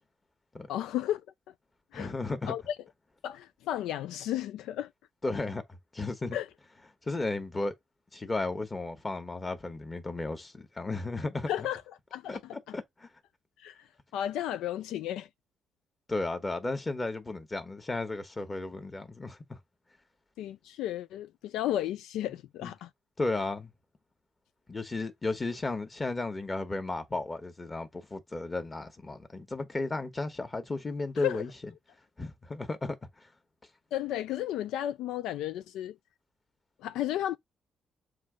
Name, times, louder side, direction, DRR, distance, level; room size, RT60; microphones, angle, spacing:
voice 1, 0.7-1.2 1.9-2.1 2.5-2.8 3.2-4.9 6.3-6.5 11.5-11.8 12.1-12.8 13.6-13.9 14.1-15.3 20.4-22.9 31.2-31.4 33.9-36.0 36.8-37.4, left 12 dB, 90° left, 0.3 m, -33 dB
voice 2, 1.9-2.5 5.2-6.4 7.1-7.7 8.1-11.7 12.3-12.4 12.7-13.1 16.1-19.6 22.6-22.7 23.2-23.7 24.7-31.5 32.2-33.0, left 2 dB, 25° left, 1.4 m, -34 dB
7.2 x 2.7 x 5.1 m
cardioid pair, 90°, 0 cm